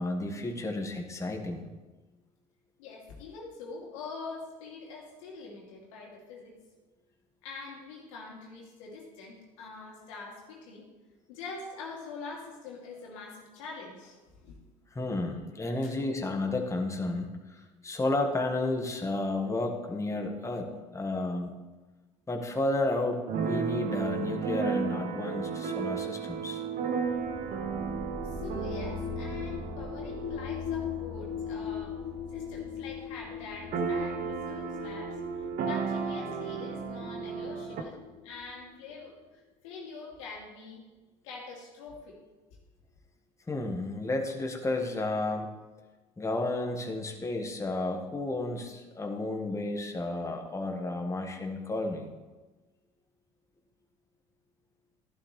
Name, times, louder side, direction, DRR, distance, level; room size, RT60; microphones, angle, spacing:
voice 1, 0.0-1.7 14.9-21.5 22.3-26.6 43.5-45.5 46.2-52.1, left 2 dB, 20° left, 3 dB, 1.6 m, -32 dB
voice 2, 2.8-6.6 7.4-10.9 11.3-14.6 15.8-16.0 28.2-32.0 32.3-40.8 41.2-42.2, left 4 dB, 85° left, -2 dB, 2.6 m, -44 dB
Keyboard (musical), 23.3-32.8 33.1-33.2 33.4-37.8, right 6 dB, 55° right, 1.1 m, -34 dB
sound 1, 27.1-38.9, left 8 dB, 50° left, 1.0 m, -40 dB
12.0 x 11.5 x 3.3 m, 1.2 s
hypercardioid pair, 70°, 16 cm